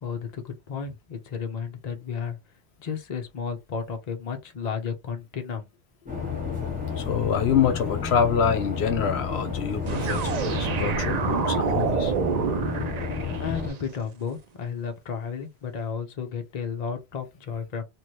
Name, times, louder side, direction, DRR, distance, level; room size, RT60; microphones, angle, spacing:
voice 1, 0.0-2.4 2.8-5.7 13.4-17.8, left 6 dB, 45° left, 0.8 m, -33 dB
sound 1, 6.1-13.7, left 6 dB, 10° right, 1.4 m, -31 dB
voice 2, 7.0-12.1, left 7 dB, 85° left, 0.9 m, -26 dB
sound 2, 9.9-13.8, right 6 dB, 50° right, 0.5 m, -27 dB
3.0 x 2.6 x 3.0 m
omnidirectional pair, 1.1 m